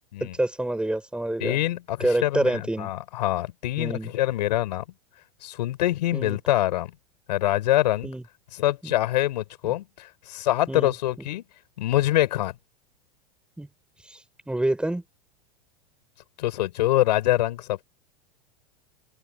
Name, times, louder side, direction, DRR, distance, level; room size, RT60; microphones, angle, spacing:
voice 1, 0.2-1.6 2.0-2.9 3.8-4.1 6.1-6.4 8.0-8.2 8.8-8.9 9.6-9.7 10.7-10.9 13.6-13.7 14.0-15.0, right 1 dB, 5° right, 6.5 m, -27 dB
voice 2, 1.4-4.8 5.4-6.9 7.3-8.1 8.5-11.4 11.8-12.5 16.4-17.8, left 14 dB, 80° left, 5.8 m, -25 dB
open air
supercardioid pair, 120°, 21 cm